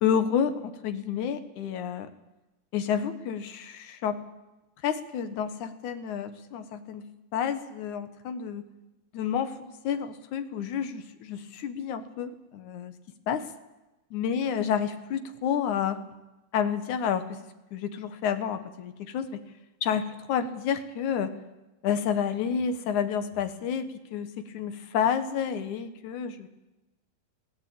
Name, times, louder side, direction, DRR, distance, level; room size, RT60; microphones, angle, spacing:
voice 1, 0.0-2.1 2.7-4.2 4.8-7.0 7.3-8.6 9.1-12.9 13.3-13.5 14.1-16.0 16.5-17.4 17.7-19.4 19.8-21.3 21.8-26.5, left 8 dB, 65° left, 10 dB, 2.2 m, -30 dB
20.5 x 17.0 x 8.7 m, 1.0 s
omnidirectional pair, 4.5 m